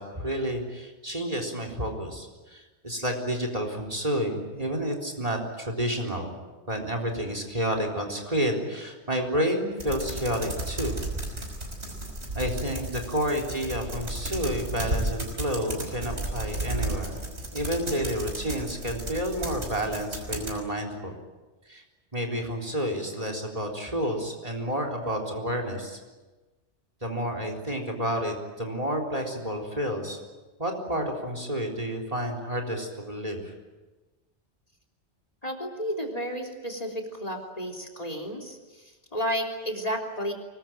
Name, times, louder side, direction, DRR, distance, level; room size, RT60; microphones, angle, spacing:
voice 1, 0.0-6.3 6.7-11.0 12.4-17.2 17.5-21.1 21.7-21.8 22.1-26.0 27.0-30.2 30.6-33.4, equal, 35° right, 4 dB, 4.0 m, -30 dB
sound 1, 9.8-20.6, right 1 dB, 75° right, 6.0 m, -34 dB
voice 2, 35.4-40.3, equal, 35° left, 5 dB, 3.6 m, -32 dB
25.0 x 21.5 x 9.1 m, 1.2 s
omnidirectional pair, 1.2 m